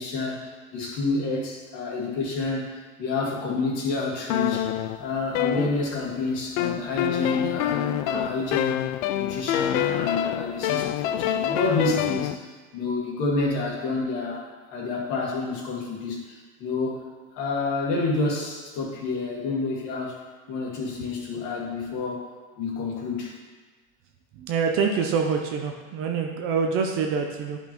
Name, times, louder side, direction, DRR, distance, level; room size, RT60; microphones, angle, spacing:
voice 1, 0.0-4.7 5.0-8.7 9.1-17.0 17.3-20.2 20.5-22.2 22.6-23.4, left 3 dB, 50° left, -2 dB, 1.9 m, -29 dB
sound 1, 4.3-6.1 6.6-12.4, left 11 dB, 75° left, 0.5 m, -26 dB
voice 2, 24.3-27.6, right 5 dB, 35° right, 3 dB, 0.6 m, -25 dB
10.5 x 5.4 x 3.0 m, 1.4 s
supercardioid pair, 160°, 40 cm